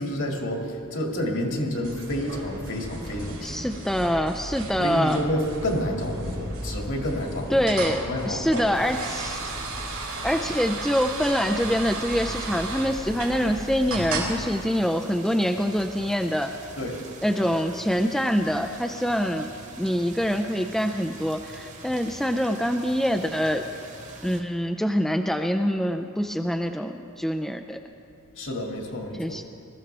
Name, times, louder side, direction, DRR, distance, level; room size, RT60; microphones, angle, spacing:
voice 1, 0.0-3.7 4.8-7.7 8.0-8.7 10.0-10.1 16.8-17.0 28.3-29.4, equal, 65° left, 0 dB, 2.2 m, -29 dB
sound 1, 1.8-14.4, right 2 dB, 80° right, 3.4 m, -34 dB
voice 2, 3.4-5.2 7.5-9.4 10.2-16.5 17.2-19.5 19.8-23.7 24.2-27.8 29.2-29.4, equal, ahead, 5 dB, 0.4 m, -25 dB
sound 2, 8.7-24.4, right 3 dB, 35° right, 1.3 m, -44 dB
21.0 x 14.0 x 3.4 m, 2.4 s
head